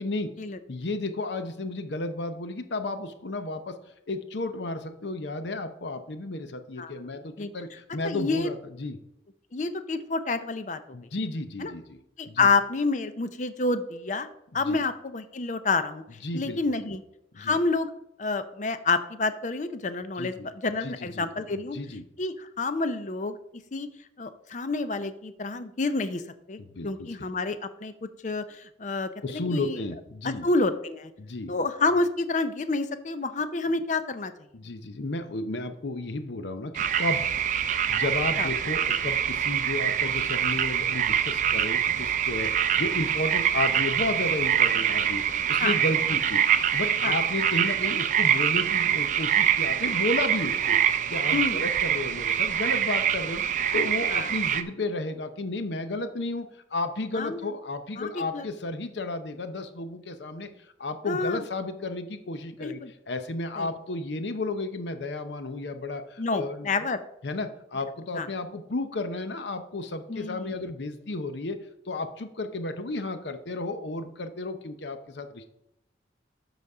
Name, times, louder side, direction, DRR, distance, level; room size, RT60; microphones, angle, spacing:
voice 1, 0.0-0.3 0.7-3.7 4.1-9.0 10.9-12.5 14.5-14.8 16.2-16.6 17.3-17.6 20.2-20.5 20.8-22.0 26.6-27.1 29.2-30.5 31.2-31.5 34.5-37.3 37.9-46.4 46.7-50.8 51.1-53.4 53.7-60.5 60.8-62.8 63.1-66.9 67.2-71.6 71.9-75.4, left 2 dB, 75° left, 9 dB, 0.8 m, -33 dB
voice 2, 8.0-8.5 9.5-11.0 11.6-11.7 12.2-14.3 14.5-16.0 16.3-17.0 17.4-17.9 18.2-21.8 22.2-23.4 23.7-23.9 24.2-26.2 26.5-27.9 28.2-29.8 30.4-31.1 31.5-34.3 38.4-38.5 45.6-45.8 47.0-47.2 51.3-51.6 54.1-54.3 57.1-57.5 58.0-58.5 61.1-61.4 62.6-62.9 63.6-63.7 66.2-67.0 68.1-68.3 70.1-70.7, left 3 dB, 40° left, 11 dB, 0.5 m, -28 dB
sound 1, 36.7-54.6, right 9 dB, 45° right, 0.4 m, -25 dB
12.0 x 4.0 x 4.8 m, 0.81 s
head